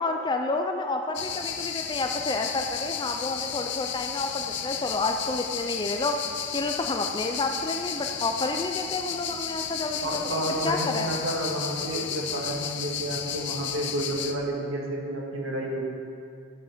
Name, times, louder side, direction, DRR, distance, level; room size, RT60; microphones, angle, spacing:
voice 1, 0.0-6.2 6.5-10.4 10.6-11.2, left 2 dB, 25° left, 4 dB, 0.5 m, -29 dB
sound 1, 1.1-14.3, left 8 dB, 60° left, 0.7 m, -33 dB
voice 2, 10.0-15.8, right 1 dB, 85° right, -2 dB, 2.0 m, -30 dB
11.5 x 7.9 x 5.0 m, 2.4 s
head